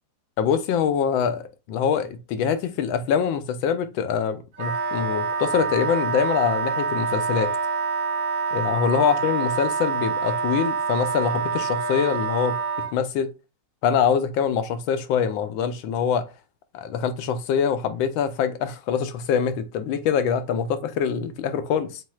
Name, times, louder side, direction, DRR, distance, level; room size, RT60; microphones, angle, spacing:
voice 1, 0.4-7.5 8.5-12.6 12.9-13.3 13.8-16.2 16.7-22.0, left 7 dB, 85° left, 1.4 m, -24 dB
Wind instrument woodwind instrument, 4.5-12.9, right 5 dB, 70° right, 1.7 m, -26 dB
7.3 x 2.6 x 2.3 m
omnidirectional pair, 2.1 m